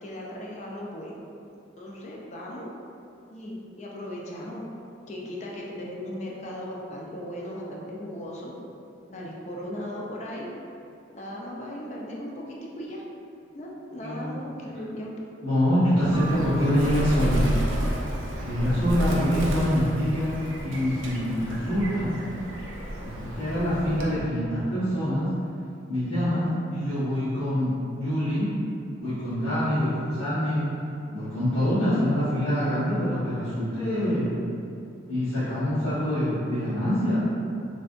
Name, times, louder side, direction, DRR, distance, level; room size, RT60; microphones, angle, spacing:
voice 1, 0.0-1.2 1.8-2.7 3.3-4.7 5.1-8.5 9.1-10.6 11.1-13.0 13.5-15.1, left 1 dB, 35° left, -3 dB, 0.4 m, -37 dB
voice 2, 14.0-14.4 15.4-17.5 18.4-22.2 23.0-25.3 25.9-28.5 29.0-30.7 31.1-34.3 35.1-37.2, equal, 85° left, -16 dB, 1.4 m, -25 dB
Bird, 16.0-24.3, right 1 dB, 75° right, 0.5 m, -31 dB
Keyboard (musical), 16.1-18.7, right 2 dB, 25° right, 0.5 m, -44 dB
3.3 x 2.6 x 2.5 m, 2.6 s
head